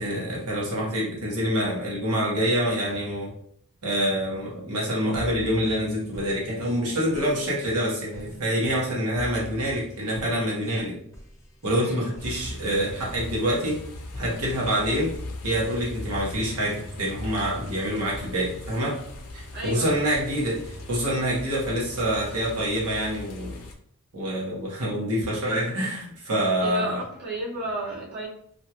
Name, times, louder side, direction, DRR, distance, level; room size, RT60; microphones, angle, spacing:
voice 1, 0.0-3.3 3.8-11.0 11.6-13.8 14.2-15.2 15.4-19.0 19.3-23.6 24.1-27.0, equal, 80° right, -5 dB, 1.1 m, -26 dB
sound 1, 5.1-21.2, left 1 dB, 15° left, 0.6 m, -43 dB
sound 2, 12.2-23.7, left 2 dB, 80° left, 0.5 m, -40 dB
voice 2, 19.5-20.0 26.6-28.3, right 2 dB, 45° right, -8 dB, 0.8 m, -32 dB
2.7 x 2.3 x 2.8 m, 0.65 s
head